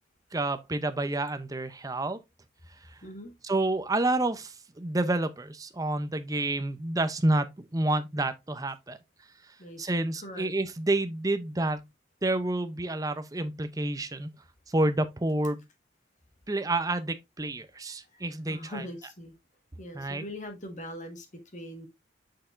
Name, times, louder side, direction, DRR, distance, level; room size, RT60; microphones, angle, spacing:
voice 1, 0.3-2.2 3.4-9.0 9.8-11.8 12.2-14.3 14.7-15.6 16.5-18.8 20.0-20.2, right 2 dB, 20° right, 0.6 m, -29 dB
voice 2, 3.0-3.3 9.6-10.5 17.9-19.3 19.8-21.9, left 1 dB, 45° left, 1.5 m, -42 dB
6.6 x 5.8 x 2.5 m
head